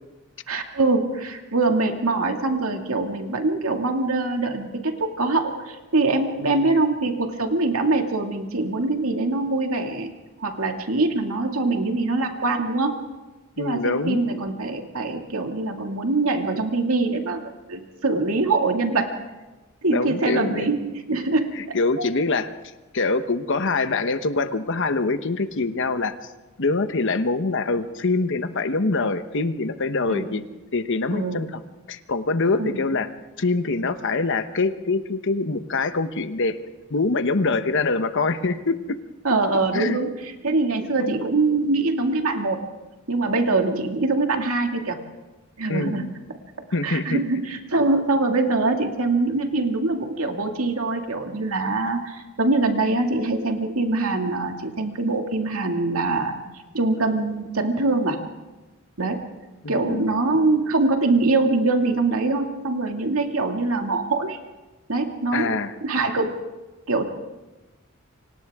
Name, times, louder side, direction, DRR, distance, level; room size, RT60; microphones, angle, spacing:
voice 1, 0.5-10.1 10.4-12.9 13.6-17.4 17.7-19.1 19.8-21.6 30.1-30.3 31.1-31.4 32.6-32.8 39.2-42.6 43.1-45.0 45.6-46.4 46.8-56.4 56.7-58.2 59.0-59.3 59.7-64.4 64.9-66.4 66.9-67.0, right 3 dB, 85° right, 3 dB, 2.3 m, -23 dB
voice 2, 13.6-14.2 19.9-20.7 21.6-22.5 22.9-26.2 26.6-30.4 30.7-31.6 31.9-33.1 33.4-36.6 36.9-39.0 39.7-40.0 41.0-41.2 45.7-46.1 46.7-47.2 59.6-60.1 65.3-65.7, left 3 dB, 60° left, 10 dB, 1.1 m, -24 dB
29.0 x 25.0 x 3.6 m, 1.1 s
head